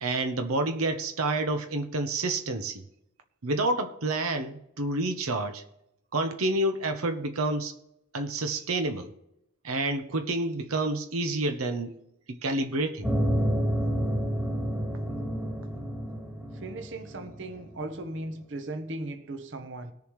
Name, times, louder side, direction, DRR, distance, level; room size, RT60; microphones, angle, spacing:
voice 1, 0.0-2.8 3.4-5.6 6.1-7.7 8.1-9.1 9.6-11.9 12.4-13.1, right 2 dB, 85° right, 0.9 m, -29 dB
sound 1, 13.0-17.9, equal, 10° right, 1.9 m, -29 dB
voice 2, 16.5-19.9, right 2 dB, 60° right, 1.0 m, -37 dB
20.0 x 7.0 x 3.2 m
head